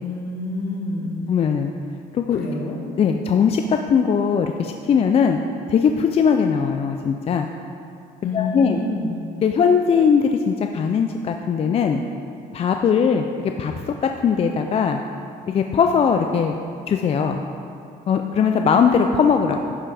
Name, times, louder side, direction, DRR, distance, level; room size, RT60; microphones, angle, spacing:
voice 1, 0.0-1.1 2.3-2.8 8.2-9.2, left 3 dB, 65° left, 0 dB, 1.4 m, -27 dB
voice 2, 1.3-1.7 2.1-2.5 3.0-5.4 5.7-7.5 8.3-8.8 9.4-12.0 12.5-15.0 15.5-16.5 16.9-17.4 18.1-19.7, left 6 dB, 35° left, 5 dB, 0.4 m, -20 dB
11.0 x 5.5 x 3.4 m, 2.5 s
cardioid pair, 110°, 17 cm